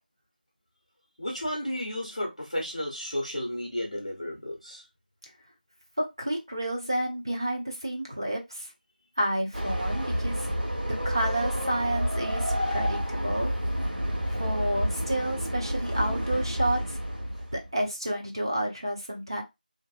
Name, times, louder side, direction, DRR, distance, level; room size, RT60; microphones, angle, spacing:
voice 1, 1.2-4.8 13.8-13.9, left 1 dB, 40° left, 0.7 m, -33 dB
voice 2, 6.0-8.7 9.2-10.4 11.0-13.5 14.4-17.0 17.5-19.4, right 1 dB, 30° right, 0.5 m, -30 dB
Train, 9.5-17.7, equal, 70° right, 1.0 m, -29 dB
2.5 x 2.1 x 2.4 m
figure-of-eight pair, 180°, 5 cm